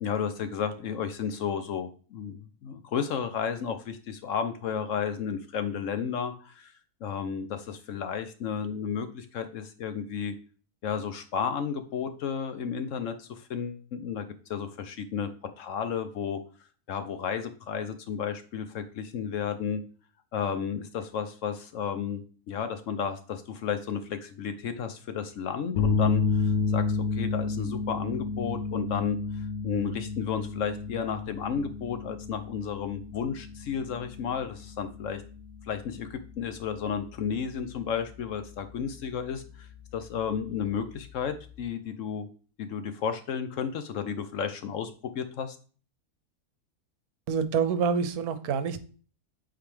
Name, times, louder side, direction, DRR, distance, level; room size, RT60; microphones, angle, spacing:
voice 1, 0.0-6.7 7.0-10.3 10.8-15.3 15.6-16.4 16.9-19.8 20.3-35.2 35.7-39.7 39.9-42.3 42.6-45.6, left 7 dB, 65° left, 9 dB, 0.9 m, -32 dB
sound 1, 25.8-41.7, left 5 dB, 85° left, 1.2 m, -32 dB
voice 2, 47.3-48.8, right 6 dB, 80° right, 11 dB, 1.2 m, -27 dB
8.5 x 3.9 x 3.3 m, 0.40 s
omnidirectional pair, 1.6 m